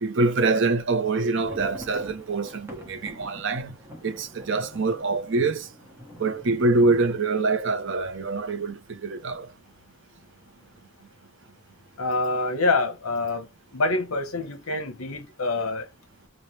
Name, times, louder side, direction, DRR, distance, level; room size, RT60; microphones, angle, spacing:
voice 1, 0.0-3.7 4.0-5.7 6.2-9.5, right 3 dB, 55° right, 0.6 m, -25 dB
sound 1, 1.1-8.8 9.1-9.2 9.5-9.7 10.2-10.7, equal, 10° right, 0.9 m, -47 dB
voice 2, 12.0-15.9, left 3 dB, 75° left, 0.9 m, -26 dB
3.2 x 2.2 x 4.1 m
head